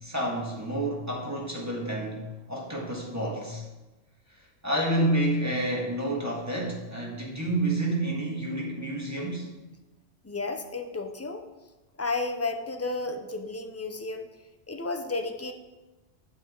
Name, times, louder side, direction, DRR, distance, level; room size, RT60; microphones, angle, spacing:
voice 1, 0.0-2.2 2.5-3.6 4.6-9.5, right 1 dB, 15° right, -3 dB, 1.7 m, -29 dB
voice 2, 10.2-11.5 12.0-14.3 14.7-15.5, left 3 dB, 20° left, 6 dB, 0.5 m, -32 dB
8.6 x 8.2 x 3.8 m, 1.1 s
omnidirectional pair, 1.2 m